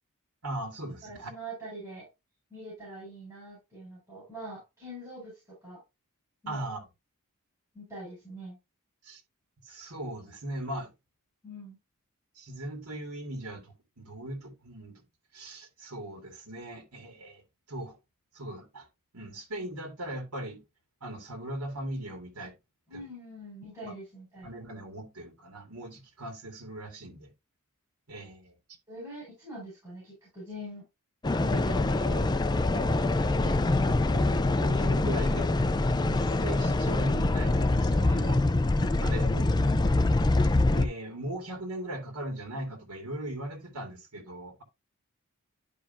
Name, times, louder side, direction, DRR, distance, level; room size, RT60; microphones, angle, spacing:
voice 1, 0.4-1.3 6.5-6.9 9.0-9.2 9.6-10.9 12.4-15.0 15.3-17.4 17.7-18.0 18.3-18.9 19.1-20.6 21.0-22.5 22.9-23.1 23.8-23.9 24.4-27.3 28.1-28.6 33.4-33.7 34.1-34.3 34.6-35.5 36.0-38.4 39.0-39.2 40.7-44.6, right 1 dB, 85° right, 2.3 m, -39 dB
voice 2, 1.0-2.1 2.5-5.8 6.4-6.6 7.7-8.6 11.4-11.8 22.9-24.5 28.9-30.9 31.4-34.2 39.1-39.6, right 1 dB, 15° right, 5.7 m, -43 dB
sound 1, 31.2-40.9, left 2 dB, 20° left, 0.5 m, -25 dB
11.5 x 4.9 x 2.7 m
head